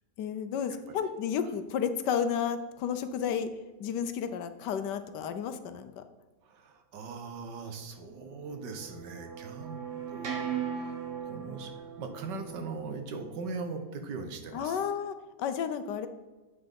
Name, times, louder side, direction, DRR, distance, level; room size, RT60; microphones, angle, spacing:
voice 1, 0.2-3.5 3.8-6.0 14.5-16.1, left 7 dB, 80° left, 10 dB, 1.3 m, -32 dB
voice 2, 6.4-9.8 10.1-11.0 11.2-11.7 12.0-14.8, right 4 dB, 80° right, 6 dB, 1.7 m, -40 dB
sound 1, 7.9-13.7, right 7 dB, 50° right, 1.4 m, -39 dB
7.8 x 5.9 x 5.3 m, 1.2 s
omnidirectional pair, 1.9 m